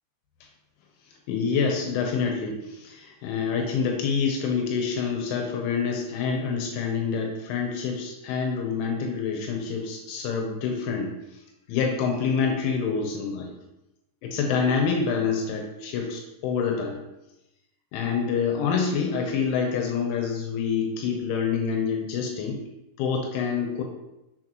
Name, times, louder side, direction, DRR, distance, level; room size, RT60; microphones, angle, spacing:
voice 1, 1.3-11.1 11.7-13.5 14.2-17.0 17.9-22.6 23.0-23.8, left 5 dB, 80° left, 2 dB, 3.2 m, -27 dB
6.8 x 6.4 x 3.0 m, 0.94 s
omnidirectional pair, 5.5 m